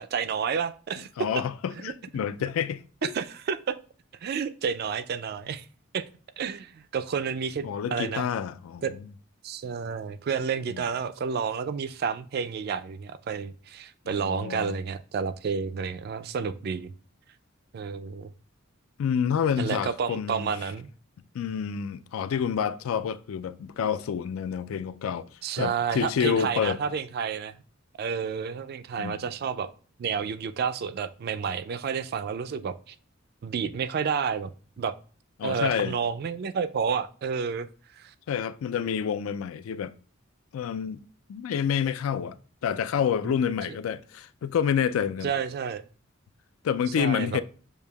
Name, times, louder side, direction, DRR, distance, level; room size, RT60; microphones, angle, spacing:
voice 1, 0.0-1.1 1.8-1.9 3.0-3.8 4.2-5.7 5.9-6.0 6.4-8.3 8.8-8.9 9.4-16.9 17.7-18.3 19.6-20.9 25.4-27.5 28.0-29.7 30.0-32.9 33.4-34.5 34.8-34.9 35.4-37.7 38.0-38.1 43.2-43.3 45.2-45.8 47.0-47.4, right 6 dB, 50° right, 0.3 m, -30 dB
voice 2, 1.2-3.1 7.6-8.8 10.7-10.8 14.1-14.8 19.0-20.5 21.3-25.3 25.6-26.8 29.0-29.2 35.4-36.0 38.3-39.9 40.5-41.0 41.3-42.4 42.6-45.3 46.6-47.4, left 7 dB, 80° left, 0.3 m, -28 dB
6.6 x 2.7 x 2.2 m
head